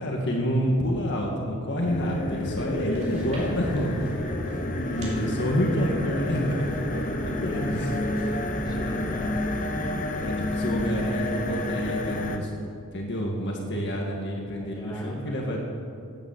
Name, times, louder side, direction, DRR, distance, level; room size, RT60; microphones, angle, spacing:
voice 1, 0.0-3.9 4.7-8.2 10.1-12.5 12.9-15.6, equal, 55° left, 0 dB, 1.8 m, -28 dB
sound 1, 1.8-12.4, left 1 dB, 35° left, 1.0 m, -30 dB
sound 2, 2.0-9.2, right 1 dB, 30° right, 3.7 m, -47 dB
voice 2, 8.3-9.4 10.5-10.8 14.6-15.6, equal, 20° left, -3 dB, 2.4 m, -40 dB
12.0 x 9.4 x 7.8 m, 2.4 s
head